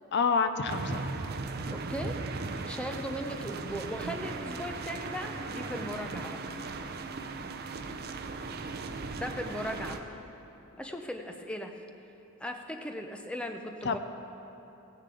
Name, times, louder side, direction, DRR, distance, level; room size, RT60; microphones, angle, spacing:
voice 1, 0.1-1.2 7.9-8.0 13.8-14.0, left 5 dB, 55° left, 9 dB, 0.5 m, -28 dB
sound 1, 0.7-10.0, right 3 dB, 45° right, 0.6 m, -37 dB
voice 2, 1.7-2.2 2.6-6.4 9.2-10.2 10.8-11.7 12.4-14.0, equal, 5° left, 4 dB, 0.6 m, -38 dB
16.5 x 9.8 x 3.8 m, 2.9 s
head